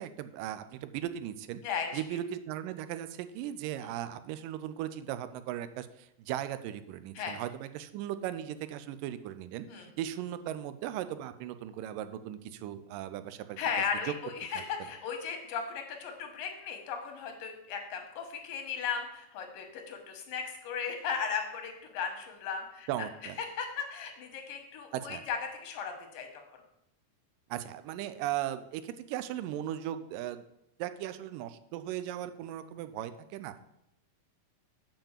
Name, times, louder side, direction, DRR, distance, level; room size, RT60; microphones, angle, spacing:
voice 1, 0.0-1.6 1.9-13.6 14.1-14.2 14.5-14.6 22.9-23.4 24.9-25.2 27.5-30.4 30.8-33.6, right 12 dB, 85° right, 12 dB, 2.2 m, -37 dB
voice 2, 1.6-2.0 3.8-3.9 7.2-7.4 9.7-9.9 13.6-22.9 23.6-25.4 25.6-26.3, left 6 dB, 85° left, 4 dB, 3.0 m, -36 dB
7.7 x 4.8 x 7.3 m, 0.82 s
omnidirectional pair, 3.9 m